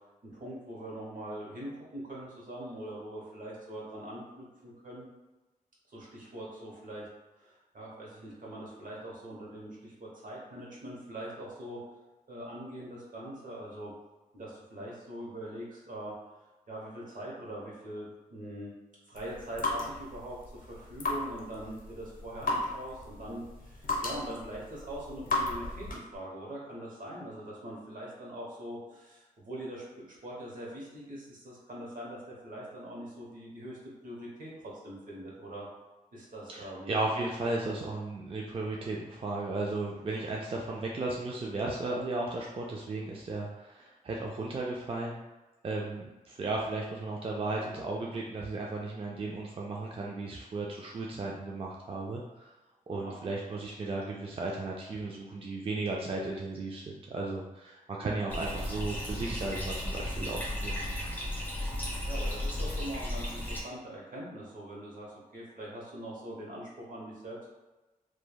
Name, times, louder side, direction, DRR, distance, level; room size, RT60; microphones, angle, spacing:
voice 1, 0.2-5.1 5.9-7.1 7.4-11.8 12.3-13.9 14.3-16.1 16.7-18.7 19.1-33.8 34.0-35.7 36.1-36.9 37.6-37.8 52.9-53.1 62.1-67.5, right 1 dB, 65° right, -4 dB, 1.0 m, -42 dB
sound 1, 19.1-26.2, left 2 dB, 70° left, 0.6 m, -35 dB
voice 2, 36.5-45.2 45.6-52.5 52.9-60.8, right 2 dB, 40° right, -2 dB, 0.4 m, -35 dB
Bathtub (filling or washing), 58.3-63.6, left 1 dB, 15° left, 0.8 m, -34 dB
3.1 x 2.2 x 2.2 m, 1.1 s
cardioid pair, 60°, 15 cm